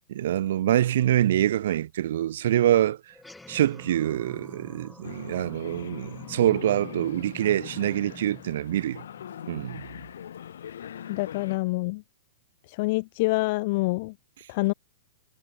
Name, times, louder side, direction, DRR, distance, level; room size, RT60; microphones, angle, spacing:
voice 1, 0.1-3.1 3.5-9.0 9.5-9.8, right 12 dB, 60° right, 0.4 m, -25 dB
sound 1, 3.1-9.8, left 2 dB, 5° left, 2.2 m, -48 dB
sound 2, 5.0-11.6, left 9 dB, 80° left, 7.9 m, -42 dB
voice 2, 11.1-12.0 12.7-14.1 14.5-14.7, left 23 dB, 40° left, 0.6 m, -26 dB
hypercardioid pair, 165°, 0 cm